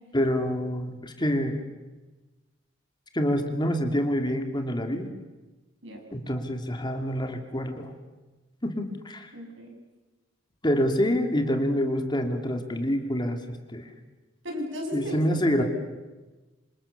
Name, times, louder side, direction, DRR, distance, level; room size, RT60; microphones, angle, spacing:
voice 1, 0.1-1.6 3.1-5.1 6.1-7.9 8.6-9.3 10.6-13.9 14.9-15.6, equal, 25° left, 5 dB, 2.6 m, -27 dB
voice 2, 9.3-9.7 14.4-15.2, left 1 dB, 70° right, 2 dB, 6.7 m, -35 dB
26.5 x 26.5 x 7.2 m, 1.2 s
head